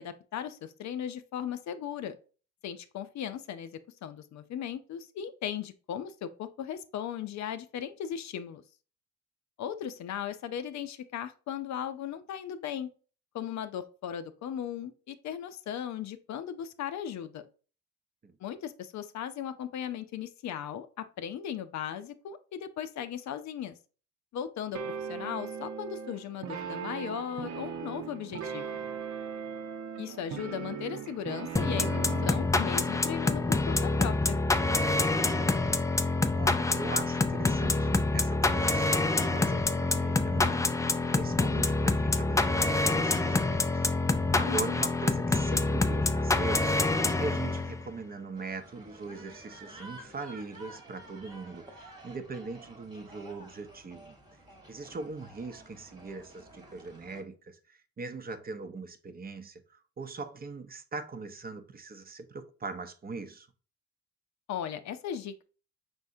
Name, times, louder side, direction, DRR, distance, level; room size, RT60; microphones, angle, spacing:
voice 1, 0.0-2.2 2.6-8.6 9.6-12.9 13.3-17.5 18.4-23.8 24.3-28.8 30.0-34.4 44.4-44.8 64.5-65.4, left 9 dB, 65° left, 0.6 m, -37 dB
sound 1, 24.7-32.5, right 7 dB, 70° right, 0.8 m, -38 dB
sound 2, 31.6-47.9, left 3 dB, 10° left, 0.3 m, -27 dB
voice 2, 35.3-35.8 36.3-54.2 54.7-63.5, right 3 dB, 30° right, 0.6 m, -41 dB
sound 3, 48.3-57.2, right 1 dB, 15° right, 1.1 m, -51 dB
5.2 x 3.5 x 2.7 m
cardioid pair, 90°, 30 cm